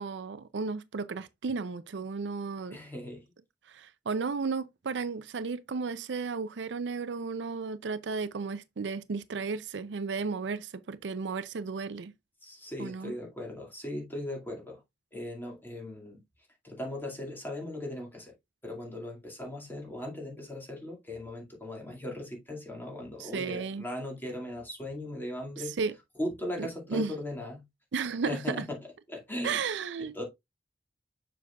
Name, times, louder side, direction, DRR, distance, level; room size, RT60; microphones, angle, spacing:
voice 1, 0.0-2.8 3.7-12.1 12.8-13.1 23.2-23.8 25.7-25.9 26.6-27.1 27.9-28.6 29.4-30.2, right 4 dB, 70° right, 0.5 m, -34 dB
voice 2, 2.7-3.3 12.4-14.8 15.1-16.2 16.6-18.3 18.6-25.7 26.2-27.6 28.3-29.6 30.0-30.2, left 1 dB, 10° left, 2.1 m, -38 dB
7.0 x 6.0 x 2.3 m
head